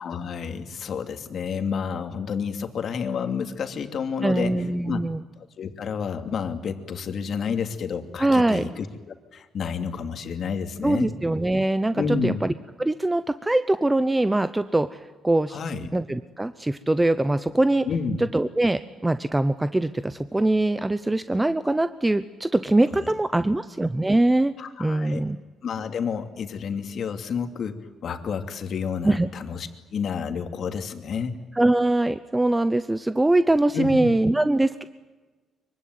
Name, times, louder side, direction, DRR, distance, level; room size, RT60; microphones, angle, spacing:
voice 1, 0.0-5.0 5.4-8.9 9.3-11.2 12.0-12.4 15.5-15.9 17.9-18.2 23.0-23.1 24.6-25.2 25.6-31.4 33.7-34.1, left 6 dB, 50° left, 6 dB, 2.7 m, -30 dB
voice 2, 4.2-5.2 8.2-8.7 10.8-12.3 12.8-15.6 15.9-17.9 18.3-24.5 24.8-25.4 29.0-29.3 31.5-34.8, right 2 dB, 10° right, 12 dB, 0.9 m, -22 dB
24.5 x 24.0 x 9.6 m, 1.2 s
cardioid pair, 120°, 0 cm